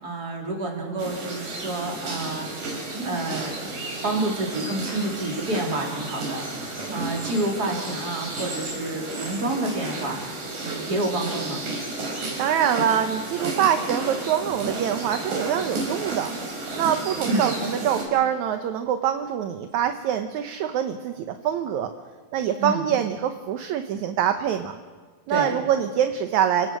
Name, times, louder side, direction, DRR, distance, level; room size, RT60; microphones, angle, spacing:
voice 1, 0.0-2.5 2.8-3.6 4.0-11.6 17.2-17.5 22.6-22.8 25.3-25.5, right 2 dB, 30° right, 0 dB, 4.1 m, -29 dB
sound 1, 1.0-18.1, right 2 dB, 90° right, 6.3 m, -32 dB
voice 2, 12.4-16.3 16.7-21.9 22.3-24.8 25.3-26.8, right 9 dB, 70° right, 7 dB, 2.1 m, -24 dB
28.5 x 17.5 x 6.3 m, 1.5 s
omnidirectional pair, 3.8 m